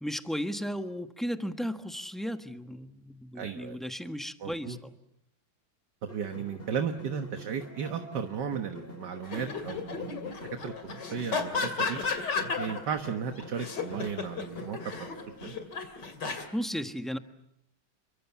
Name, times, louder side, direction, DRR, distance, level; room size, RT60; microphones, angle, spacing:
voice 1, 0.0-4.9 16.5-17.2, equal, ahead, 8 dB, 0.8 m, -35 dB
voice 2, 3.4-3.8 4.4-4.8 6.0-10.7 11.1-12.0 12.6-15.1 15.4-15.6, right 7 dB, 60° right, 7 dB, 1.9 m, -35 dB
sound 1, 6.1-15.6, equal, 25° left, 3.6 m, -46 dB
sound 2, 9.2-13.0 13.4-16.4, left 5 dB, 55° left, 3.3 m, -33 dB
29.0 x 24.0 x 7.2 m, 0.75 s
omnidirectional pair, 2.2 m